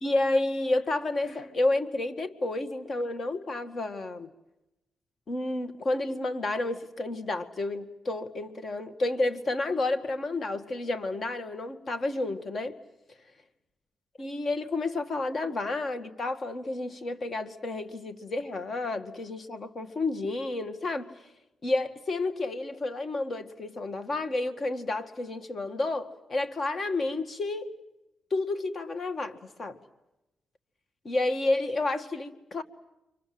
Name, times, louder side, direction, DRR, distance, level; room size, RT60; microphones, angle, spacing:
voice 1, 0.0-4.3 5.3-12.8 14.2-21.1 21.6-27.7 28.3-29.8 31.0-32.6, left 2 dB, 40° left, 1.8 m, -30 dB
29.5 x 25.0 x 7.8 m
cardioid pair, 110°, 0 cm